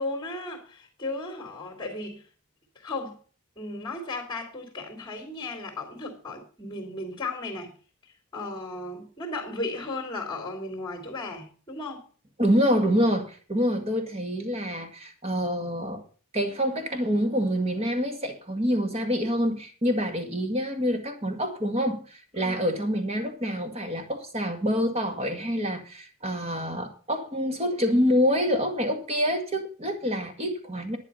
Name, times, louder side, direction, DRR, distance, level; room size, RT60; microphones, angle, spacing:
voice 1, 0.0-2.2 2.7-3.2 3.5-7.7 8.0-12.1 22.3-22.7, left 2 dB, 20° left, 3.2 m, -35 dB
voice 2, 12.4-16.0 16.3-31.0, equal, 30° right, 1.9 m, -26 dB
11.0 x 9.8 x 5.6 m
head